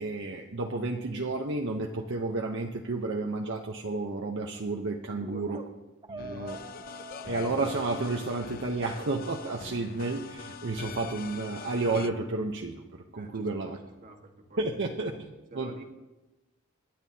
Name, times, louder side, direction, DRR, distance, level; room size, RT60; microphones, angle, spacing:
voice 1, 0.0-5.6 6.1-6.6 7.2-12.8 13.1-13.8 14.6-15.3 15.5-15.7, right 3 dB, 60° right, 2 dB, 0.8 m, -31 dB
voice 2, 5.1-5.6 13.1-13.7 14.0-14.8 15.5-15.8, right 2 dB, 40° right, 2 dB, 1.5 m, -48 dB
sound 1, 5.5-5.7 6.0-8.8, right 2 dB, 20° right, 0.6 m, -46 dB
sound 2, 6.2-12.1, left 6 dB, 45° left, 0.5 m, -43 dB
26.0 x 10.5 x 2.8 m, 1.1 s
head